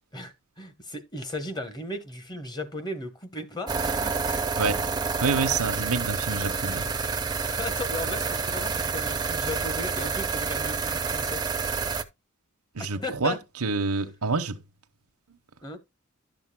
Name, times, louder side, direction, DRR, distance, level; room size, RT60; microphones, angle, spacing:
voice 1, 0.1-4.4 7.3-11.4 12.8-13.4 15.6-15.8, left 1 dB, 20° left, 1.0 m, -36 dB
sound 1, 3.7-12.0, right 5 dB, 20° right, 0.6 m, -28 dB
voice 2, 5.2-6.9 12.7-13.4 13.6-14.5, right 4 dB, 85° right, 1.0 m, -27 dB
12.0 x 7.1 x 2.2 m
head